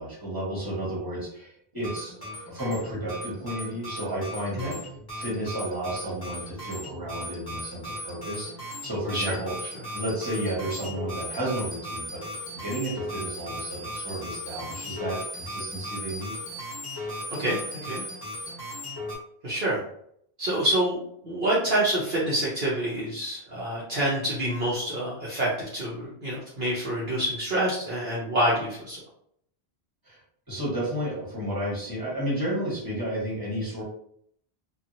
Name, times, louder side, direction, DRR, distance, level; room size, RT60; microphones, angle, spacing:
voice 1, 0.0-2.2 2.5-4.8 5.1-8.5 8.8-9.6 9.9-12.2 12.6-16.3 30.0-30.2 30.5-33.8, right 1 dB, 20° right, -6 dB, 1.3 m, -32 dB
sound 1, 1.7-19.2, equal, 20° left, 1.1 m, -37 dB
voice 2, 9.1-9.7 17.4-18.0 19.4-19.8 20.4-21.0 21.2-29.0, right 1 dB, 55° right, -8 dB, 1.0 m, -27 dB
2.9 x 2.5 x 2.5 m, 0.68 s
omnidirectional pair, 1.1 m